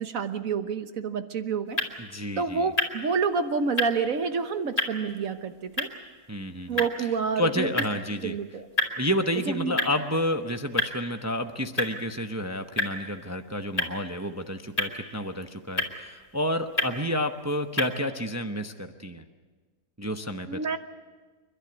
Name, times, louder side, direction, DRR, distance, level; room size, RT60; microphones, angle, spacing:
voice 1, 0.0-1.8 2.4-5.9 6.7-7.7 8.2-8.6 9.5-9.7 20.5-20.8, right 5 dB, 65° right, 9 dB, 1.5 m, -28 dB
sound 1, 1.6-17.9, left 2 dB, 25° left, 2.5 m, -34 dB
voice 2, 2.0-2.7 6.3-6.8 7.4-8.4 9.0-19.2 20.0-20.6, equal, 15° right, 6 dB, 0.6 m, -30 dB
29.0 x 12.0 x 9.5 m, 1.4 s
omnidirectional pair, 1.6 m